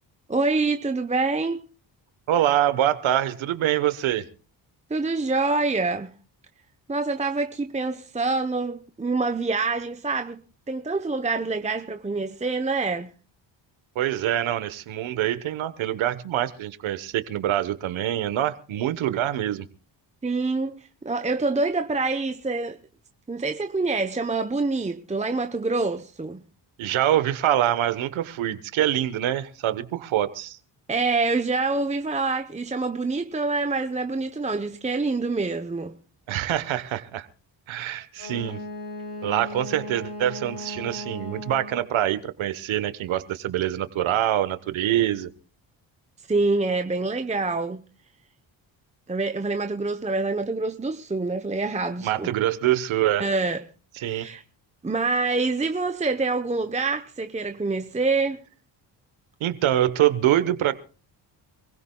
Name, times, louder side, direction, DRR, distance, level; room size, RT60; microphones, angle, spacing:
voice 1, 0.3-1.6 4.9-6.1 6.9-13.1 20.2-22.8 23.3-26.4 30.9-36.0 46.3-47.8 49.1-52.3 53.2-53.6 54.0-54.4 54.8-58.4, right 3 dB, 15° right, 0.9 m, -26 dB
voice 2, 2.3-4.2 13.9-19.7 26.8-30.6 36.3-37.3 37.7-38.6 39.2-45.3 52.0-53.3 54.0-54.3 59.4-60.7, right 12 dB, 80° right, 1.3 m, -25 dB
Wind instrument woodwind instrument, 38.2-41.9, left 1 dB, 75° left, 5.5 m, -37 dB
26.5 x 16.0 x 2.3 m
cardioid pair, 70°, 47 cm